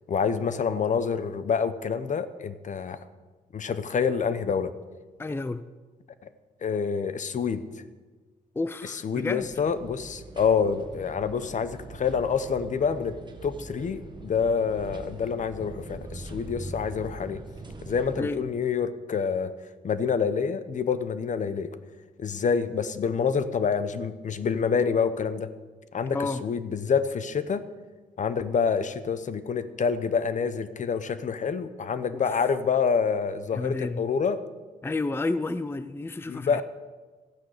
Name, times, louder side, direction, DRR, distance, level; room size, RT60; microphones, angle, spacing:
voice 1, 0.1-3.0 3.5-4.7 6.6-7.7 9.0-13.2 13.4-17.4 17.8-19.5 19.8-21.7 22.2-25.5 25.9-27.7 28.2-34.4 36.3-36.6, left 6 dB, 55° left, 13 dB, 0.9 m, -27 dB
voice 2, 5.2-5.6 8.5-9.5 18.2-18.4 26.1-26.4 32.2-32.5 33.5-34.1 34.8-36.6, left 3 dB, 15° left, 13 dB, 0.5 m, -31 dB
sound 1, 9.4-18.2, right 2 dB, 30° right, 1.7 m, -42 dB
13.5 x 9.4 x 6.6 m, 1.3 s
cardioid pair, 75°, 15 cm